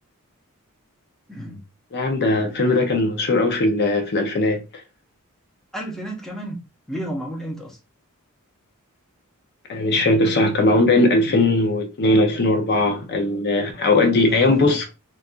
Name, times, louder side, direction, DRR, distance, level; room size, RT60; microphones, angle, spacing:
voice 1, 1.3-1.6 2.4-2.6 5.7-6.6 6.9-7.8 14.2-14.8, equal, ahead, 0.7 m, -32 dB
voice 2, 1.9-4.6 9.7-14.9, left 2 dB, 50° left, 0.6 m, -19 dB
4.1 x 2.4 x 2.3 m
head